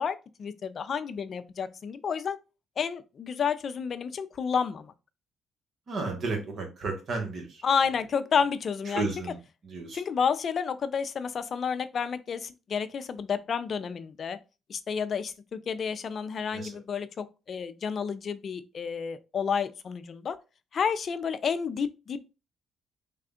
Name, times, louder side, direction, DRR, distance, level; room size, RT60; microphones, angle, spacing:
voice 1, 0.0-2.4 2.8-4.9 7.6-9.1 9.9-14.4 14.7-20.4 20.7-22.3, left 6 dB, 50° left, 0.4 m, -30 dB
voice 2, 5.9-7.6 8.8-10.0 16.5-16.8, right 3 dB, 60° right, 1.2 m, -33 dB
3.5 x 2.3 x 3.6 m
cardioid pair, 90°, 0 cm